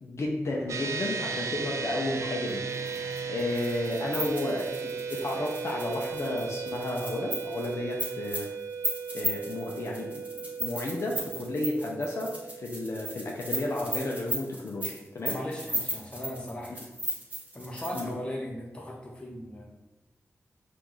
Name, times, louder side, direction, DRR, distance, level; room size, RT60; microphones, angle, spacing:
voice 1, 0.0-2.6 3.3-8.5 9.1-10.2 10.6-15.4 16.7-16.8 17.9-18.1, left 2 dB, 65° left, -1 dB, 0.6 m, -32 dB
sound 1, 0.7-14.3, right 5 dB, 80° right, 0.3 m, -36 dB
sound 2, 2.7-18.1, right 1 dB, 25° right, 1.3 m, -35 dB
voice 2, 15.2-16.7 17.5-19.7, left 1 dB, 20° left, -1 dB, 0.9 m, -37 dB
5.8 x 2.5 x 3.0 m, 1.0 s
wide cardioid pair, 110°, 5 cm